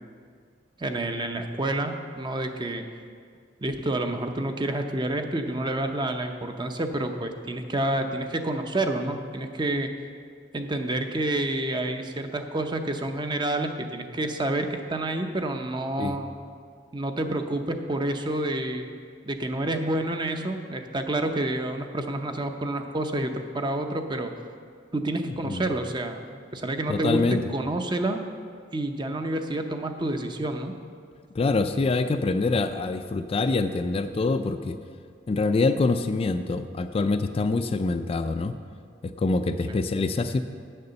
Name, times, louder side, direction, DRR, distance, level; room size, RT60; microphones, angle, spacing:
voice 1, 0.8-2.9 3.6-9.9 10.5-16.3 16.9-18.8 19.2-24.3 24.9-27.2 27.5-28.2 28.7-30.7 39.7-39.8, right 1 dB, 25° right, 6 dB, 0.6 m, -29 dB
voice 2, 26.9-27.4 31.4-34.8 35.3-38.5 39.0-40.4, left 3 dB, 30° left, 8 dB, 0.3 m, -25 dB
8.8 x 6.7 x 6.8 m, 2.1 s
head